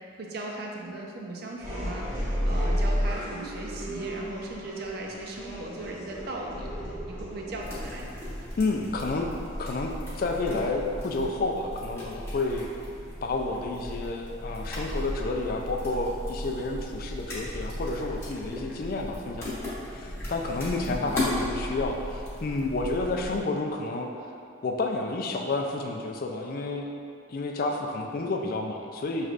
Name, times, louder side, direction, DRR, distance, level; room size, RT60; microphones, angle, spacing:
voice 1, 0.2-6.7 7.1-8.1 20.7-21.1, right 2 dB, 50° right, 0 dB, 0.5 m, -38 dB
sound 1, 1.6-10.2, equal, 15° right, 1.2 m, -33 dB
sound 2, 7.6-23.4, left 1 dB, 15° left, 1.1 m, -36 dB
voice 2, 8.6-9.3 9.6-9.9 10.2-12.7 13.2-19.6 19.9-24.1 24.6-26.9 27.3-29.3, left 3 dB, 45° left, 2 dB, 0.3 m, -30 dB
6.3 x 3.2 x 2.4 m, 2.4 s
head